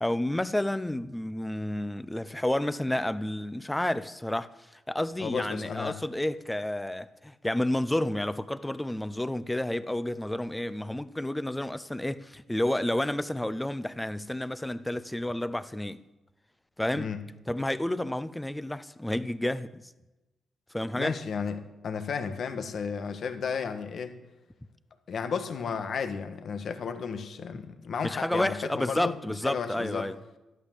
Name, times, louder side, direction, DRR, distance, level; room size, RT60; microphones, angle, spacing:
voice 1, 0.0-16.0 16.8-17.1 17.5-19.9 20.7-21.2 28.0-30.2, left 1 dB, 10° left, 0.7 m, -30 dB
voice 2, 5.2-6.0 16.9-17.2 20.9-24.2 25.1-30.1, left 6 dB, 65° left, 1.5 m, -33 dB
13.0 x 12.0 x 7.4 m
cardioid pair, 90°, 0 cm